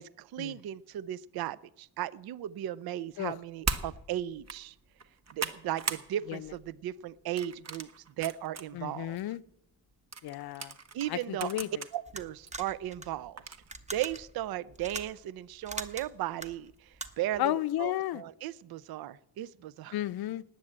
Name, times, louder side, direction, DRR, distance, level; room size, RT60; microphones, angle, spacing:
voice 1, 0.0-4.8 5.3-7.9 8.2-9.2 10.9-11.5 11.9-13.4 13.9-17.4 17.8-19.9, right 12 dB, 65° right, 20 dB, 0.5 m, -36 dB
sound 1, 3.6-3.9 4.3-4.6 5.0-6.1 6.4-6.7 7.4-8.6 9.2-9.3 10.1-11.9 12.5-12.6 13.4-13.7, right 4 dB, 40° right, 1.3 m, -37 dB
voice 2, 8.7-9.4 10.2-10.7 11.1-11.7 17.4-18.2 19.9-20.4, left 14 dB, 65° left, 14 dB, 0.6 m, -33 dB
sound 2, 12.1-17.4, right 2 dB, 15° right, 1.2 m, -43 dB
19.0 x 7.7 x 8.7 m, 0.83 s
cardioid pair, 110°, 40 cm